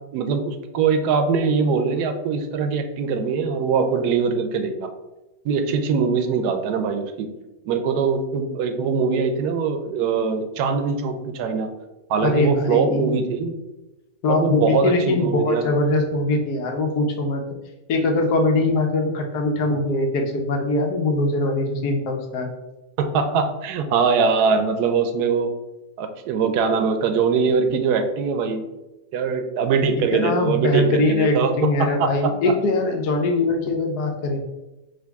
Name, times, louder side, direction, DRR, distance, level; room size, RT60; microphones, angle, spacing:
voice 1, 0.1-4.9 5.4-7.3 7.7-11.7 12.1-13.5 14.3-15.7 23.0-25.5 26.0-28.6 29.1-32.5, right 5 dB, 85° right, 8 dB, 1.1 m, -22 dB
voice 2, 12.2-13.2 14.2-17.5 17.9-22.5 30.1-34.4, left 2 dB, 85° left, 3 dB, 1.3 m, -22 dB
5.1 x 2.5 x 3.5 m, 1.0 s
omnidirectional pair, 1.7 m